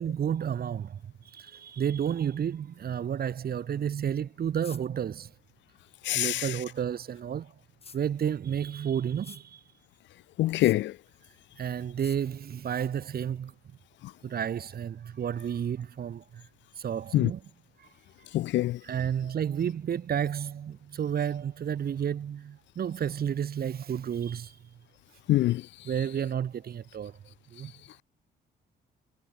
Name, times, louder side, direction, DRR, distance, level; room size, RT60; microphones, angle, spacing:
voice 1, 0.0-5.3 6.1-7.5 7.9-9.6 11.6-13.5 14.2-16.5 16.8-17.4 17.8-17.9 18.8-24.6 25.9-27.2 27.5-27.7, right 8 dB, 50° right, 1.2 m, -31 dB
sound 1, 4.6-4.8 6.0-6.2 7.8-8.0 9.2-9.4 10.6-10.8 12.0-12.2, left 5 dB, 30° left, 0.9 m, -47 dB
voice 2, 6.0-6.5 10.4-11.0 17.1-17.3 18.3-18.8 25.3-25.6, left 15 dB, 70° left, 0.4 m, -25 dB
cardioid pair, 90°, 20 cm